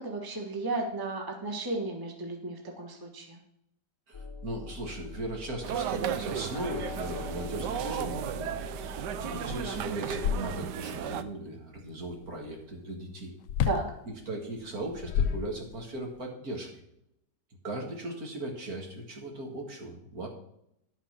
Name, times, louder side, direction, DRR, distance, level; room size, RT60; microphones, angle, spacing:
voice 1, 0.0-3.4 13.6-13.8, right 2 dB, 15° right, 1 dB, 1.3 m, -34 dB
sound 1, 4.1-9.8, left 3 dB, 20° left, 0.9 m, -42 dB
voice 2, 4.1-13.3 14.3-16.7 17.6-20.3, right 1 dB, 60° right, 1 dB, 2.3 m, -38 dB
sound 2, 5.6-11.2, right 9 dB, 80° right, 1.3 m, -35 dB
sound 3, 9.0-9.1 9.4-10.9 13.5-13.9 14.8-16.0, left 8 dB, 90° left, 1.3 m, -30 dB
10.5 x 5.9 x 5.9 m, 0.77 s
omnidirectional pair, 1.8 m